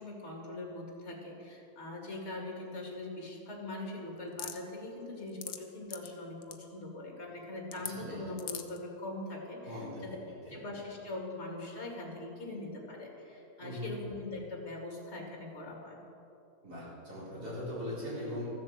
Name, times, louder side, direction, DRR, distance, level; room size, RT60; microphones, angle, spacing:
voice 1, 0.0-10.2 10.5-16.0, left 2 dB, 40° left, 0 dB, 2.5 m, -42 dB
sound 1, 4.4-4.6 5.2-5.6 5.9-6.1 6.4-6.6 7.7-7.9 8.4-8.8, left 9 dB, 70° left, 1.2 m, -39 dB
voice 2, 7.7-8.2 9.6-10.1 10.4-10.6 13.6-13.9 16.6-18.5, left 1 dB, 65° right, -8 dB, 4.6 m, -40 dB
14.5 x 7.6 x 7.4 m, 2.8 s
omnidirectional pair, 1.8 m